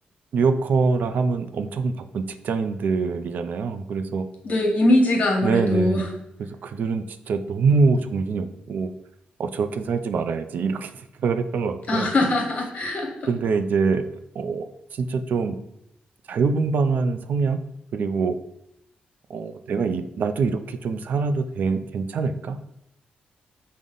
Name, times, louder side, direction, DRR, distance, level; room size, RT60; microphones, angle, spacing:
voice 1, 0.3-4.2 5.4-6.1 6.4-8.9 9.4-12.1 13.3-14.1 14.3-14.6 14.9-15.6 16.3-17.6 17.9-18.4 19.3-22.6, right 4 dB, 70° right, 9 dB, 0.3 m, -24 dB
voice 2, 4.4-6.0 11.9-13.1, left 1 dB, 45° left, 1 dB, 1.2 m, -21 dB
5.3 x 2.1 x 3.8 m, 0.79 s
cardioid pair, 100°, 3 cm